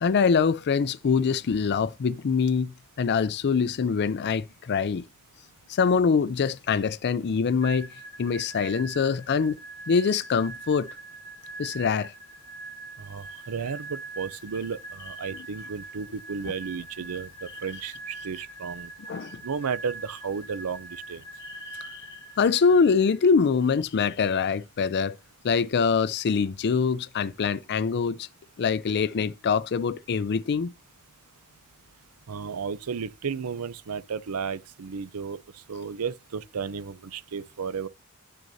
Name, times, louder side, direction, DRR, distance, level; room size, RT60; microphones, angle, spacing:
voice 1, 0.0-5.1 5.7-7.9 8.2-9.6 9.9-10.9 11.6-12.1 15.3-15.4 19.1-19.4 21.5-22.1 22.4-25.2 25.4-28.3 28.6-30.7, left 5 dB, 50° left, 0.4 m, -24 dB
sound 1, 7.6-23.2, right 3 dB, 20° left, 1.1 m, -43 dB
voice 2, 13.0-18.9 19.4-21.2 32.3-37.9, right 6 dB, 90° right, 0.6 m, -33 dB
10.5 x 6.3 x 2.7 m
head